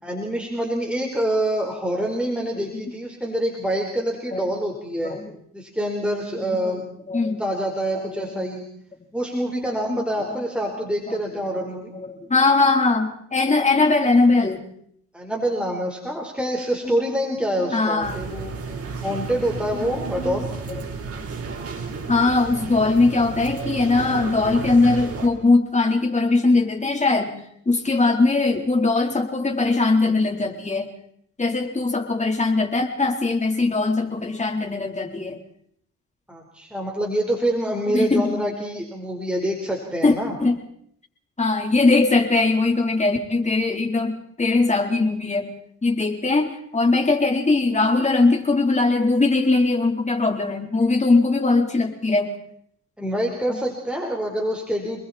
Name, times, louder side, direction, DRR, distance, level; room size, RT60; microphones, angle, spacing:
voice 1, 0.0-5.2 5.5-6.8 7.4-8.6 9.1-11.9 15.1-18.5 19.0-20.5 36.3-40.3 53.0-55.0, right 1 dB, 5° right, 0 dB, 4.5 m, -26 dB
voice 2, 6.4-7.4 7.9-8.5 9.0-9.1 10.1-10.7 11.1-11.4 11.9-14.6 16.8-17.0 17.6-18.3 20.7-20.8 22.1-27.3 27.7-30.9 31.4-35.4 37.9-38.4 40.0-40.1 40.4-40.6 41.4-45.5 45.8-52.3 53.5-53.6, left 3 dB, 25° left, 3 dB, 4.0 m, -21 dB
sound 1, 18.0-25.3, right 5 dB, 50° right, 4.6 m, -32 dB
28.5 x 21.5 x 4.4 m, 0.68 s
cardioid pair, 90°, 30 cm